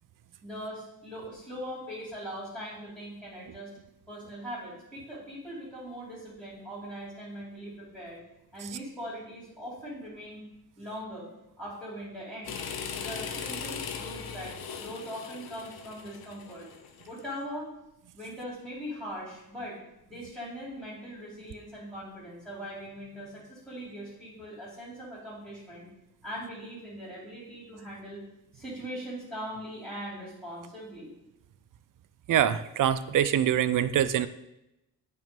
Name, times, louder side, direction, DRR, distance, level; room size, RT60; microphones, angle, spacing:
voice 1, 0.4-3.7 4.1-8.2 8.5-10.4 10.8-11.3 11.6-16.7 17.1-17.7 18.1-19.8 20.0-25.9 26.2-28.2 28.5-31.1, equal, ahead, -10 dB, 2.7 m, -41 dB
sound 1, 12.5-17.3, left 6 dB, 75° left, 0.8 m, -39 dB
voice 2, 32.3-34.3, right 10 dB, 60° right, 14 dB, 0.5 m, -24 dB
9.1 x 3.2 x 5.2 m, 0.89 s
wide cardioid pair, 125°, 37 cm